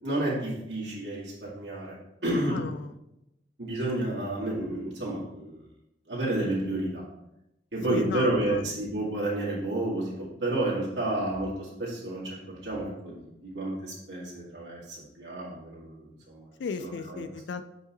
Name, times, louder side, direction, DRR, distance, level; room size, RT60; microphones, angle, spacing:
voice 1, 0.0-2.0 2.2-2.6 3.6-5.6 6.1-7.0 7.7-12.3 12.6-16.5 16.8-17.2, right 1 dB, 80° right, -6 dB, 2.0 m, -30 dB
voice 2, 2.5-2.9 7.9-8.6 16.6-17.6, left 5 dB, 90° left, 10 dB, 0.4 m, -35 dB
7.9 x 4.6 x 3.0 m, 0.88 s
head